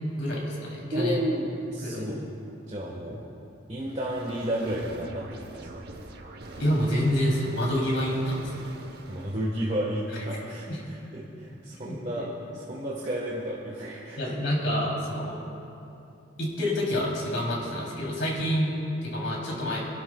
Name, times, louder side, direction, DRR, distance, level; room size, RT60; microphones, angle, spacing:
voice 1, 0.1-1.2 1.8-2.1 6.6-8.7 10.7-10.8 11.8-12.2 14.2-15.4 16.4-19.8, equal, 65° left, -4 dB, 3.2 m, -28 dB
voice 2, 0.9-2.3 2.7-3.2 3.7-5.7 9.1-12.3 12.5-14.3, equal, 35° right, -4 dB, 1.4 m, -32 dB
sound 1, 3.8-9.6, right 2 dB, 50° right, 0.9 m, -44 dB
29.0 x 12.0 x 2.3 m, 2.8 s
head